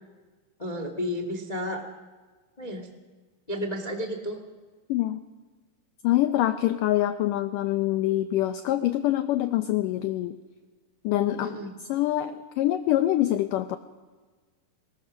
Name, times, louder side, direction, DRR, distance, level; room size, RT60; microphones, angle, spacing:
voice 1, 0.6-1.8 2.6-2.8 3.5-4.4 11.4-11.7, equal, 30° left, 4 dB, 0.7 m, -32 dB
voice 2, 4.9-5.2 6.0-10.4 11.0-11.5 11.9-13.8, left 14 dB, 80° left, 10 dB, 2.0 m, -25 dB
20.5 x 20.5 x 6.3 m, 1.3 s
omnidirectional pair, 4.5 m